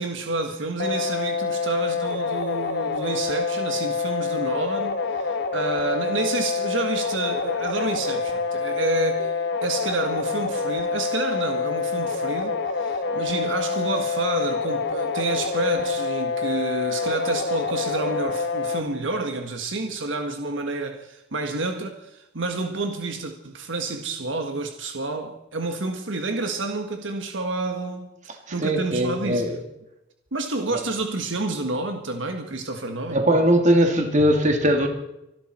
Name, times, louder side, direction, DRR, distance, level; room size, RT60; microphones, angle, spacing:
voice 1, 0.0-28.1 28.5-29.5 30.3-33.2, right 2 dB, 75° right, 1.6 m, -29 dB
sound 1, 0.8-18.8, left 4 dB, 65° left, 1.7 m, -27 dB
voice 2, 28.6-29.6 33.1-34.9, equal, 40° right, 2.6 m, -20 dB
25.5 x 12.5 x 4.4 m
head